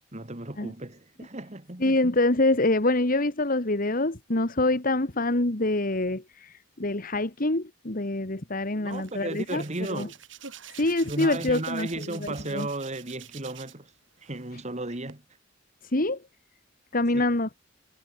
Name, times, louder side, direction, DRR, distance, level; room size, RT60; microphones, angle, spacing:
voice 1, 0.0-1.8 8.7-10.2 11.0-13.9 14.2-15.2 17.1-17.3, right 2 dB, 35° right, 2.5 m, -35 dB
voice 2, 1.8-9.6 9.9-10.1 10.8-12.7 15.8-16.2 16.9-17.5, left 2 dB, 45° left, 1.9 m, -25 dB
Hands, 8.9-13.9 14.2-15.1, right 9 dB, 75° right, 6.3 m, -47 dB
head